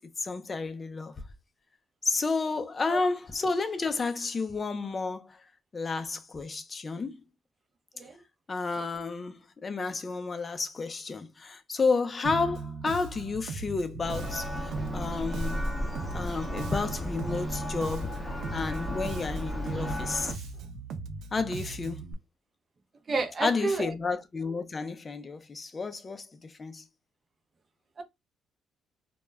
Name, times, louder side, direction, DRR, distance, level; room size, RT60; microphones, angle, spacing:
voice 1, 0.2-1.1 2.0-5.4 5.7-7.1 8.5-15.7 16.1-20.3 21.3-22.0 23.4-26.8, left 4 dB, 25° left, 0.4 m, -31 dB
Bass guitar, 12.2-22.1, right 4 dB, 75° right, 0.4 m, -38 dB
Church bell, 14.0-20.3, left 1 dB, 5° left, 0.7 m, -35 dB
voice 2, 23.1-23.9 28.0-28.1, right 3 dB, 30° right, 0.5 m, -29 dB
2.2 x 2.0 x 3.3 m
cardioid pair, 125°, 0 cm